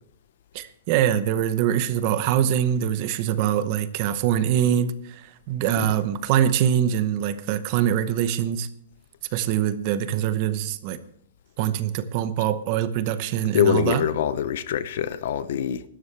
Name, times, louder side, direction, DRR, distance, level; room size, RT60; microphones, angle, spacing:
voice 1, 0.5-8.7 9.3-11.0 11.6-14.0, right 10 dB, 35° right, 0.8 m, -23 dB
voice 2, 13.5-15.8, left 9 dB, 55° left, 0.8 m, -24 dB
16.5 x 12.5 x 3.4 m
supercardioid pair, 175°, 0 cm